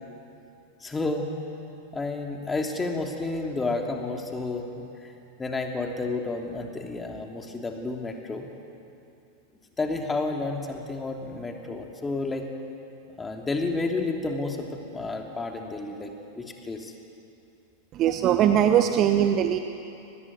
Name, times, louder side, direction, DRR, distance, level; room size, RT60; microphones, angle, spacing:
voice 1, 0.8-1.3 1.9-5.1 5.4-8.5 9.8-12.5 13.2-16.9, left 3 dB, 15° left, 2 dB, 3.1 m, -31 dB
voice 2, 17.9-19.6, right 10 dB, 35° right, 7 dB, 1.1 m, -21 dB
24.5 x 19.5 x 9.6 m, 2.7 s
figure-of-eight pair, 90°, 0 cm